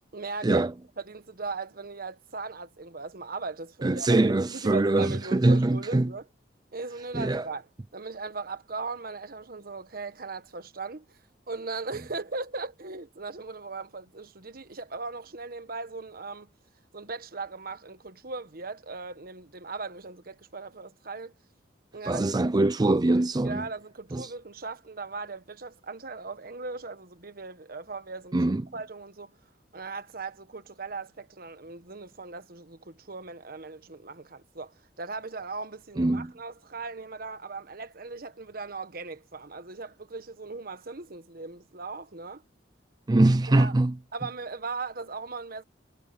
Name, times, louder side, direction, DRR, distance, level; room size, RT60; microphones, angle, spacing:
voice 1, 0.1-0.6 1.0-4.1 4.5-6.2 6.7-7.7 7.9-11.2 11.5-16.5 16.9-21.3 21.9-22.3 23.4-29.4 29.7-42.4 43.5-43.7 44.1-45.6, right 4 dB, 55° right, 1.3 m, -38 dB
voice 2, 3.8-6.1 7.1-7.5 22.0-23.7 24.1-24.3 28.3-28.7 36.0-36.3 43.1-43.9, right 2 dB, 25° right, 0.4 m, -23 dB
head